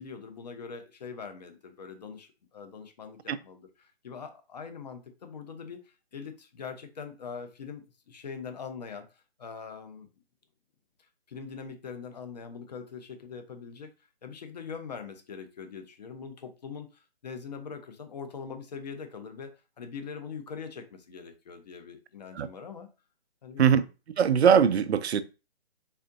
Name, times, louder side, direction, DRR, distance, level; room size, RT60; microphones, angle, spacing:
voice 1, 0.0-10.1 11.3-13.9 14.2-19.5 19.8-22.9 23.4-23.9, left 6 dB, 40° left, 0.8 m, -42 dB
voice 2, 24.2-25.2, right 7 dB, 80° right, 0.5 m, -21 dB
4.2 x 3.6 x 2.6 m
hypercardioid pair, 160°, 32 cm